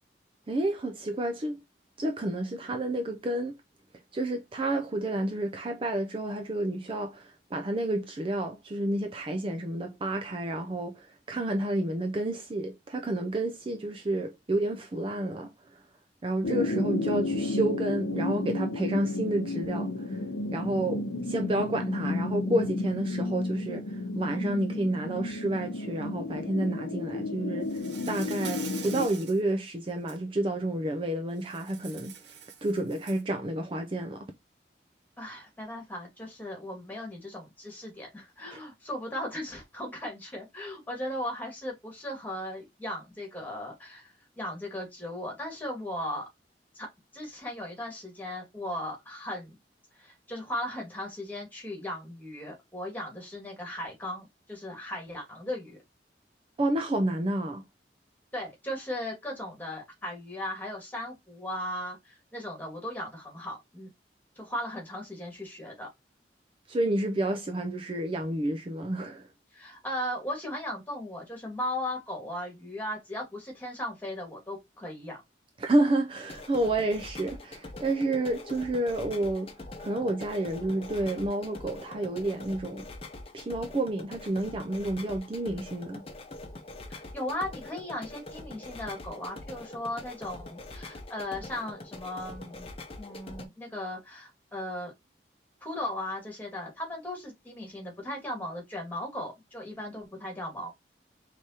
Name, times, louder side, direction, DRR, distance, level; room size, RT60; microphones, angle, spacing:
voice 1, 0.5-1.6 2.0-3.6 4.1-15.8 16.2-20.2 20.5-34.3 38.5-38.6 56.6-57.6 66.7-69.3 75.6-79.5 79.8-82.9 83.3-86.1, right 1 dB, 30° right, 0.4 m, -30 dB
sound 1, 16.4-29.1, left 2 dB, 80° left, 0.8 m, -32 dB
Insect, 27.7-29.4 29.9-30.2 31.4-33.3, right 7 dB, 75° right, 0.8 m, -44 dB
voice 2, 35.2-46.3 46.8-46.9 47.1-49.6 50.0-55.8 58.3-63.9 64.4-65.9 69.5-75.2 86.9-92.7 93.0-94.9 95.6-100.7, left 1 dB, 10° left, 1.8 m, -37 dB
sound 2, 76.2-93.5, left 2 dB, 35° left, 0.8 m, -44 dB
4.8 x 3.4 x 2.8 m
head